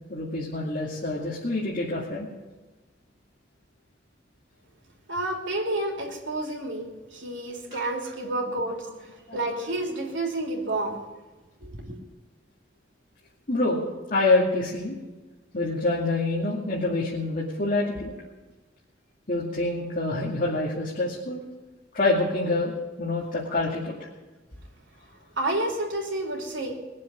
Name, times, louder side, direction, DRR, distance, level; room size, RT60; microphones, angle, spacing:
voice 1, 0.1-2.3 9.3-9.4 13.5-13.8 14.1-15.0 15.5-18.1 19.3-21.4 21.9-22.7 23.0-23.9, left 2 dB, 45° left, 2.4 m, -26 dB
voice 2, 5.1-9.0 9.3-11.0 11.6-12.0 25.4-26.8, right 1 dB, 85° right, 3.0 m, -30 dB
20.5 x 7.4 x 8.3 m
head